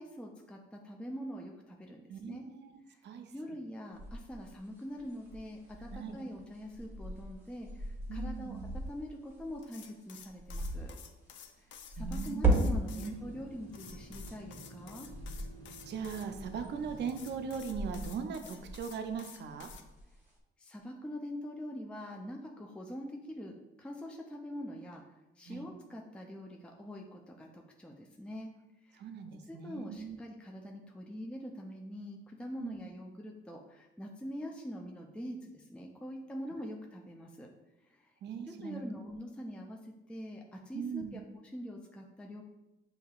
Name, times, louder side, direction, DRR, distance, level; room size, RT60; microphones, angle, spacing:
voice 1, 0.0-2.4 2.9-3.0 3.3-8.6 8.9-11.0 11.6-15.1 20.6-25.0 25.4-28.5 28.8-29.1 29.5-37.5 37.8-38.1 38.4-42.4, equal, 5° left, 0 dB, 0.4 m, -44 dB
voice 2, 2.1-2.8 3.0-3.3 5.9-6.2 8.1-8.7 12.0-13.1 15.9-19.7 25.5-25.7 29.0-30.2 32.6-32.8 38.2-38.8 40.7-41.2, right 6 dB, 60° right, 6 dB, 0.5 m, -40 dB
sound 1, 3.9-9.6 10.2-10.9 11.7-14.5 14.9-17.3 17.6-19.1 19.6-20.3, right 2 dB, 10° right, 1.0 m, -36 dB
sound 2, 9.6-13.1 13.7-16.3 17.1-19.8, left 8 dB, 70° left, 0.4 m, -52 dB
sound 3, 12.4-17.6, right 1 dB, 20° left, 0.9 m, -52 dB
6.4 x 2.8 x 2.3 m, 0.97 s
cardioid pair, 90°, 20 cm